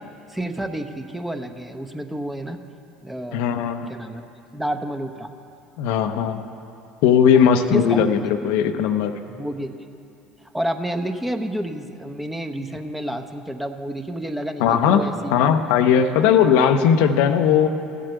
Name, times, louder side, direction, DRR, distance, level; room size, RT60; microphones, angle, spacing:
voice 1, 0.3-2.6 3.0-3.4 3.9-4.2 4.5-5.3 7.3-7.4 7.7-8.1 9.3-9.8 10.4-15.4, right 1 dB, 5° right, 6 dB, 0.9 m, -29 dB
voice 2, 3.3-3.9 5.8-6.4 7.0-9.1 14.6-17.7, left 7 dB, 70° left, 8 dB, 0.7 m, -18 dB
14.5 x 7.6 x 8.1 m, 2.7 s
hypercardioid pair, 70°, 2 cm